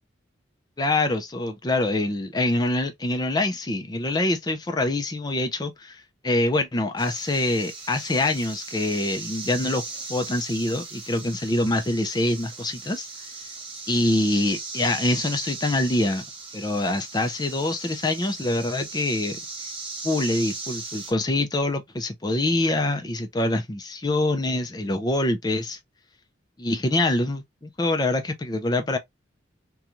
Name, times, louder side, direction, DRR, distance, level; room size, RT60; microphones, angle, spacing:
voice 1, 0.8-9.8 10.1-13.1 13.9-16.2 16.5-19.4 20.0-25.8 26.6-29.0, left 2 dB, 20° left, 0.4 m, -25 dB
sound 1, 7.0-21.1, right 3 dB, 30° right, 0.8 m, -38 dB
2.5 x 2.3 x 2.9 m
head